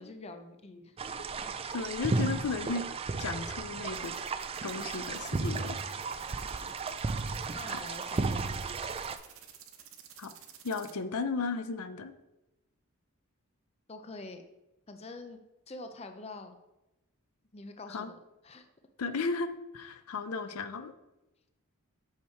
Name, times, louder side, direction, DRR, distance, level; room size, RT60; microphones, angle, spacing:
voice 1, 0.0-1.3 6.3-6.7 7.5-8.6 13.9-14.4 14.9-15.4 15.7-16.6 17.5-18.2 18.4-18.7, left 2 dB, 30° left, 6 dB, 0.5 m, -46 dB
sound 1, 1.0-9.2, right 4 dB, 25° right, 0.3 m, -34 dB
voice 2, 1.7-2.9 3.2-4.1 4.6-5.8 7.7-7.8 10.2-10.3 10.6-12.1 17.9-18.1 19.0-20.9, left 4 dB, 85° left, 10 dB, 0.6 m, -34 dB
sound 2, 3.9-10.9, right 10 dB, 65° right, 0.9 m, -52 dB
6.5 x 5.7 x 4.5 m, 0.97 s
head